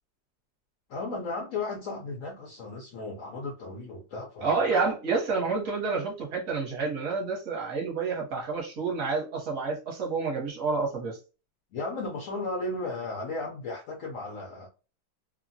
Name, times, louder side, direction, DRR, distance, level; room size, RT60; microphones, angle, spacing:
voice 1, 0.9-4.6 11.7-14.7, left 2 dB, 85° left, 0 dB, 0.7 m, -35 dB
voice 2, 4.4-11.2, right 4 dB, 50° right, -1 dB, 1.2 m, -29 dB
3.1 x 2.2 x 2.6 m, 0.33 s
omnidirectional pair, 2.1 m